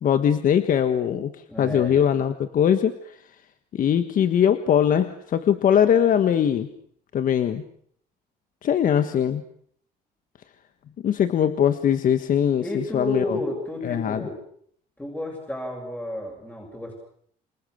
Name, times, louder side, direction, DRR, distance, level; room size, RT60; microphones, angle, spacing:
voice 1, 0.0-1.3 1.6-3.2 3.7-6.7 7.1-7.6 8.6-9.4 11.0-13.4 13.8-14.2, left 9 dB, 55° left, 10 dB, 1.5 m, -21 dB
voice 2, 1.5-2.0 12.6-14.4 15.0-16.9, left 1 dB, 10° left, -1 dB, 7.7 m, -31 dB
28.0 x 27.5 x 6.6 m, 0.65 s
cardioid pair, 110°, 17 cm